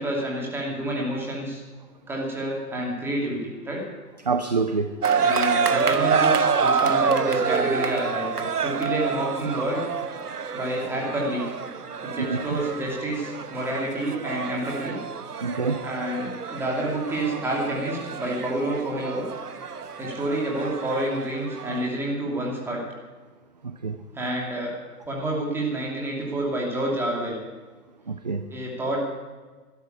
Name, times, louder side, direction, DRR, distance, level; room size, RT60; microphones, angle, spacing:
voice 1, 0.0-1.6 2.1-3.9 5.1-9.8 10.5-11.4 12.0-15.0 15.8-19.2 20.0-22.8 24.1-24.8 25.1-27.4 28.5-29.0, right 1 dB, 5° right, -2 dB, 2.6 m, -28 dB
voice 2, 4.3-4.9 12.2-12.6 15.4-15.8 23.6-24.0 28.1-28.4, right 4 dB, 30° right, 9 dB, 0.5 m, -26 dB
sound 1, 5.0-21.9, right 6 dB, 75° right, 1.0 m, -27 dB
12.5 x 12.0 x 9.4 m, 1.3 s
figure-of-eight pair, 135°, 46 cm